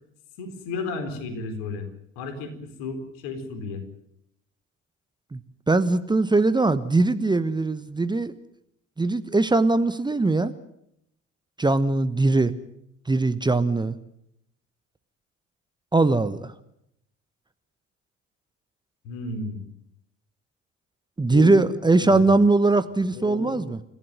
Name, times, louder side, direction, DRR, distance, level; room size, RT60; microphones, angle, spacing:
voice 1, 0.4-1.9 2.2-3.8 19.0-19.6 21.2-21.7 21.9-22.3 23.1-23.6, left 3 dB, 60° left, 7 dB, 4.3 m, -33 dB
voice 2, 5.7-8.3 9.0-10.5 11.6-12.5 13.1-14.0 15.9-16.5 21.2-23.8, right 3 dB, 10° right, 12 dB, 1.1 m, -21 dB
29.5 x 15.5 x 9.2 m, 0.77 s
figure-of-eight pair, 60°, 39 cm